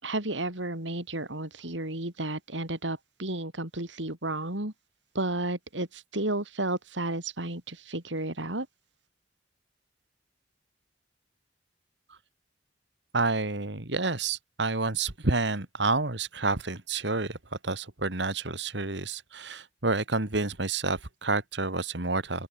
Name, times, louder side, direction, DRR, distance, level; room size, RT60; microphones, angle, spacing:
voice 1, 0.0-4.7 5.1-8.7, right 2 dB, 80° right, 5.5 m, -32 dB
voice 2, 13.1-17.4 17.6-22.5, right 3 dB, 65° right, 2.3 m, -29 dB
open air
head